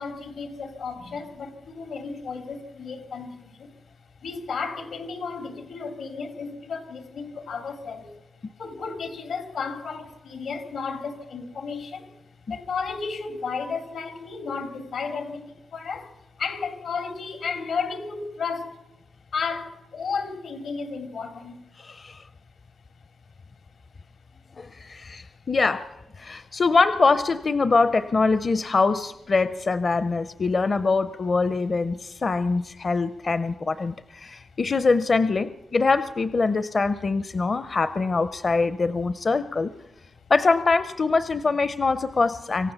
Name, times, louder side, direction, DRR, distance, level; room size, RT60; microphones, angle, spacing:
voice 1, 0.0-3.7 4.2-8.1 8.6-12.1 12.5-16.1 16.4-18.8 19.3-21.6, left 5 dB, 85° left, 2.6 m, -33 dB
voice 2, 21.8-22.2 24.6-25.9 26.2-39.7 40.3-42.7, left 4 dB, 45° left, 0.6 m, -23 dB
26.0 x 15.0 x 7.0 m
wide cardioid pair, 110°, 0 cm